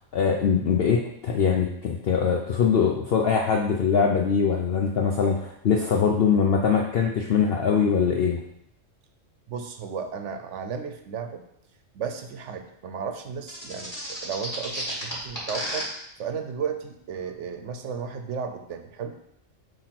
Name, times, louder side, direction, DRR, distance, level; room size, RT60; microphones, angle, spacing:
voice 1, 0.1-8.4, left 6 dB, 60° left, 1 dB, 0.8 m, -22 dB
voice 2, 9.5-11.4 11.9-15.9 16.2-19.2, right 6 dB, 70° right, 7 dB, 0.9 m, -34 dB
sound 1, 13.5-15.8, equal, 15° left, 2.2 m, -32 dB
8.7 x 3.0 x 5.8 m, 0.77 s
omnidirectional pair, 1.3 m